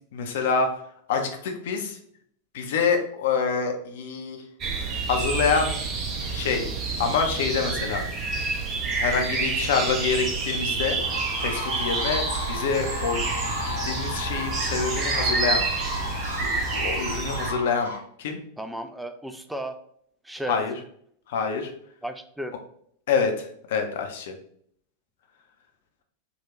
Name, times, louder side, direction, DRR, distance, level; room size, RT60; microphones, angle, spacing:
voice 1, 0.1-0.7 1.1-2.0 2.5-4.4 5.1-5.7 6.3-6.6 7.0-8.0 9.0-11.0 11.4-13.2 13.8-15.6 16.4-17.9 18.2-18.4 20.5-20.7 21.3-21.7 23.1-23.3 23.7-24.3, left 5 dB, 55° left, 5 dB, 0.6 m, -26 dB
sound 1, 4.6-17.5, right 4 dB, 30° right, 0.7 m, -28 dB
sound 2, 11.0-18.0, left 1 dB, 85° right, 0.8 m, -34 dB
voice 2, 18.6-19.8 20.2-20.6 22.0-22.5, right 1 dB, 5° right, 7 dB, 0.3 m, -34 dB
3.8 x 2.3 x 2.9 m, 0.65 s
figure-of-eight pair, 90°, 0 cm